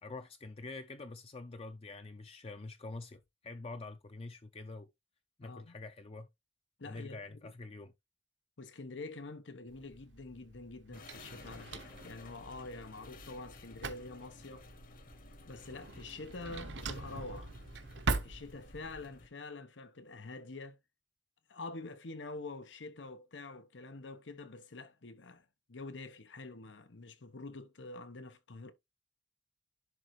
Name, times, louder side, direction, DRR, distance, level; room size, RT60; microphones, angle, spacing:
voice 1, 0.0-4.9 5.4-6.3 6.8-7.9, left 3 dB, 35° left, 0.5 m, -46 dB
voice 2, 5.4-5.8 6.8-7.5 8.6-14.7 15.5-17.5 18.2-20.8 21.5-28.7, left 3 dB, 90° left, 1.0 m, -46 dB
Drawer open or close, 9.7-19.0, right 3 dB, 75° right, 1.0 m, -42 dB
sound 1, 10.9-19.3, left 3 dB, 50° left, 1.3 m, -55 dB
11.0 x 3.8 x 3.1 m
head